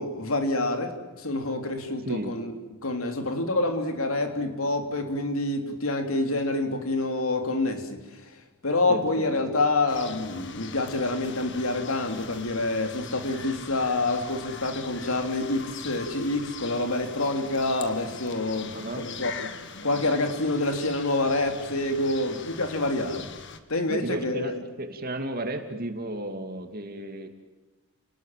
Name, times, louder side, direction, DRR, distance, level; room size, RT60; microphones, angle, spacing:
voice 1, 0.0-2.5 2.8-8.0 8.6-19.5 19.8-23.3 23.7-24.5, left 2 dB, 80° left, 6 dB, 3.3 m, -27 dB
voice 2, 8.9-9.3 18.7-19.0 23.9-27.3, right 1 dB, 45° right, 6 dB, 2.7 m, -33 dB
sound 1, 9.9-23.6, left 5 dB, 55° left, 1.8 m, -42 dB
30.0 x 19.5 x 7.6 m, 1.2 s
head